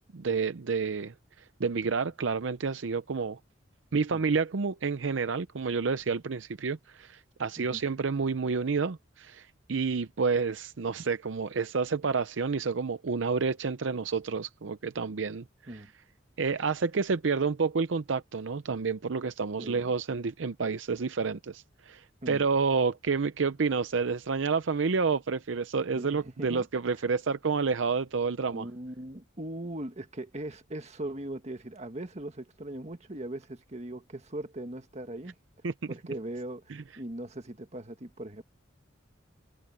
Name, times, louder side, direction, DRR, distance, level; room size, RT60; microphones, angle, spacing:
voice 1, 0.1-1.1 1.6-3.4 3.9-15.4 15.7-15.8 16.4-28.6 35.6-35.7 36.7-36.8, right 5 dB, 70° right, 0.6 m, -29 dB
voice 2, 3.9-4.2 7.6-7.8 15.7-15.9 19.6-19.8 22.2-22.4 25.9-26.6 28.5-35.3 35.9-38.4, right 1 dB, 35° right, 1.7 m, -39 dB
head